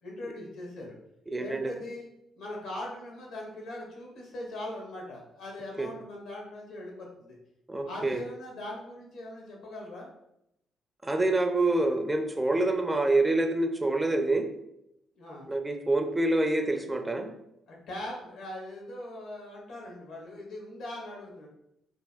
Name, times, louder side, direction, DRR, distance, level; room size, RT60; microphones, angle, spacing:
voice 1, 0.0-1.0 1.4-2.1 2.3-7.4 7.8-10.1 15.1-15.5 17.7-21.5, left 1 dB, 80° left, -1 dB, 1.3 m, -40 dB
voice 2, 1.3-1.7 5.8-5.9 7.7-8.2 11.0-14.5 15.5-17.3, right 2 dB, 15° right, 5 dB, 0.4 m, -26 dB
3.4 x 2.4 x 3.4 m, 0.80 s
cardioid pair, 90°, 0 cm